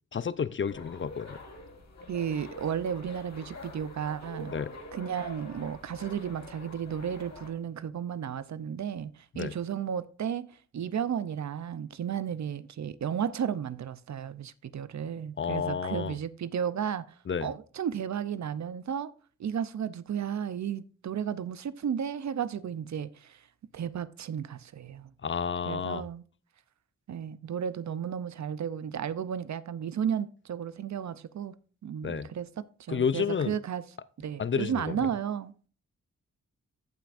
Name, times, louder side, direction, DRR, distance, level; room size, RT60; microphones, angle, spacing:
voice 1, 0.1-1.4 4.5-4.7 9.3-9.5 15.4-16.2 17.3-17.5 25.2-26.1 32.0-32.3 32.9-33.5 34.4-35.0, left 6 dB, 40° left, 0.5 m, -30 dB
sound 1, 0.7-7.5, left 2 dB, 60° left, 2.4 m, -46 dB
voice 2, 2.1-4.6 4.9-10.5 10.7-17.1 17.4-19.1 19.4-23.4 23.7-25.1 25.7-26.2 27.1-31.5 31.8-33.8 34.2-35.5, right 8 dB, 65° right, 0.6 m, -33 dB
15.0 x 5.8 x 2.5 m
cardioid pair, 50°, 31 cm